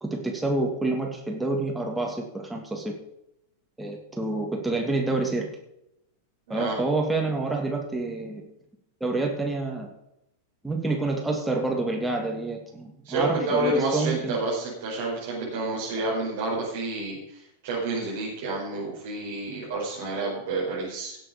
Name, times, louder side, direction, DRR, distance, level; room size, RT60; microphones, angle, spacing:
voice 1, 0.0-2.9 3.8-5.5 6.5-8.4 9.0-9.9 10.6-14.4, right 2 dB, 5° right, 0 dB, 2.8 m, -28 dB
voice 2, 6.5-6.8 13.0-21.2, right 2 dB, 55° right, -6 dB, 4.9 m, -29 dB
17.0 x 7.6 x 5.3 m, 0.81 s
figure-of-eight pair, 90°, 0 cm